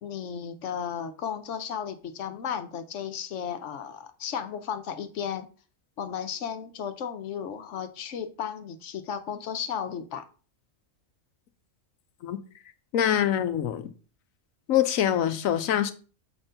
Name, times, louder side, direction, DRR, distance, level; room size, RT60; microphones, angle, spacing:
voice 1, 0.0-5.5 6.0-10.2, left 8 dB, 65° left, 1.1 m, -34 dB
voice 2, 12.9-13.9 14.7-15.9, left 10 dB, 85° left, 1.1 m, -24 dB
7.1 x 4.4 x 5.1 m
omnidirectional pair, 1.4 m